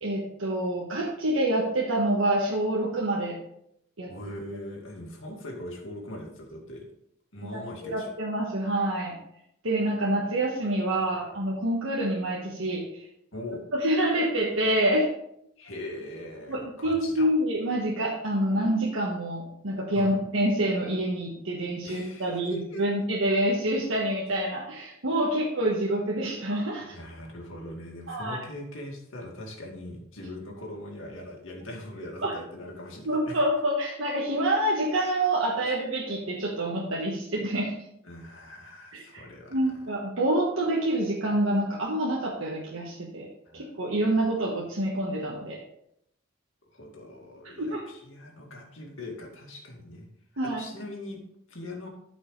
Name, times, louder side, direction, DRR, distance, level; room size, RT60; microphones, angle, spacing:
voice 1, 0.0-3.4 4.0-4.1 7.5-9.2 9.6-13.0 13.8-15.1 16.5-27.0 28.1-28.4 32.2-32.3 33.0-37.8 38.9-39.2 39.5-43.3 43.5-45.6 47.6-47.8 50.4-50.6, right 1 dB, 75° right, -3 dB, 1.4 m, -27 dB
voice 2, 4.1-6.9 7.3-8.1 11.1-11.2 13.3-13.6 15.6-17.3 19.9-20.2 21.8-22.8 26.8-33.4 35.6-35.7 38.0-39.8 43.4-43.8 46.7-50.1 50.4-51.2 51.5-51.9, left 1 dB, 70° left, 0 dB, 2.1 m, -41 dB
13.0 x 5.4 x 3.3 m, 0.77 s
head